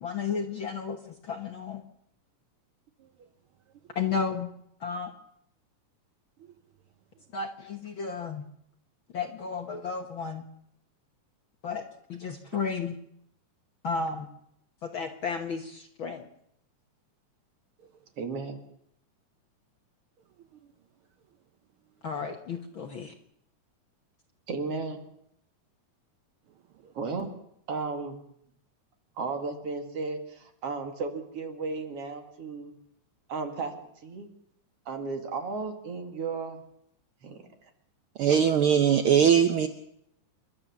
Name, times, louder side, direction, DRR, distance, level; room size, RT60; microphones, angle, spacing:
voice 1, 0.0-1.8 3.9-4.5 4.8-5.1 7.3-8.4 9.1-10.4 11.6-11.8 12.1-13.0 13.8-14.3 14.8-16.2 22.0-23.1, left 5 dB, 55° left, 5 dB, 1.5 m, -33 dB
voice 2, 18.2-18.6 24.5-25.0 26.9-27.3 27.7-28.2 29.2-32.7 33.3-33.7 34.0-34.3 34.9-36.6 37.2-37.4, right 4 dB, 50° right, 5 dB, 3.0 m, -34 dB
voice 3, 38.2-39.7, right 8 dB, 75° right, 9 dB, 1.2 m, -20 dB
29.5 x 12.5 x 7.2 m, 0.75 s
omnidirectional pair, 3.6 m